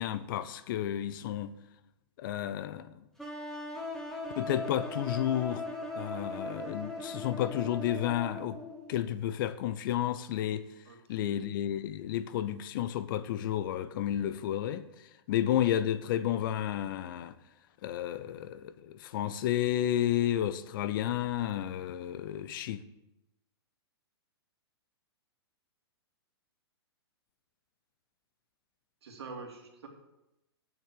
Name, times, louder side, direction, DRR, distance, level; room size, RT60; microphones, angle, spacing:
voice 1, 0.0-1.5 2.2-3.0 4.4-5.7 5.9-8.6 8.9-10.7 11.1-14.9 15.3-17.4 17.8-22.8, left 11 dB, 50° left, 0.7 m, -31 dB
sound 1, 3.2-9.0, left 2 dB, 5° left, 2.0 m, -39 dB
voice 2, 10.8-11.5 29.0-29.9, right 4 dB, 75° right, 2.6 m, -46 dB
8.5 x 6.7 x 7.4 m
hypercardioid pair, 130°, 14 cm